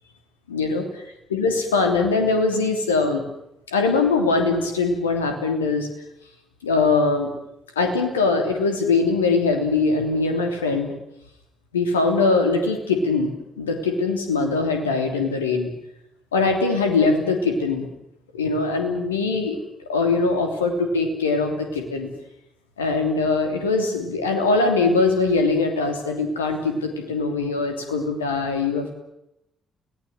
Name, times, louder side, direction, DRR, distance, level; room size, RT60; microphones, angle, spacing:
voice 1, 0.5-1.0 1.3-3.2 3.7-5.9 6.6-7.3 7.8-11.0 11.7-15.7 16.3-17.9 18.3-19.6 19.9-22.1 22.8-28.9, left 3 dB, 80° left, 5 dB, 3.0 m, -22 dB
29.5 x 18.5 x 7.9 m, 0.84 s
figure-of-eight pair, 40°, 0 cm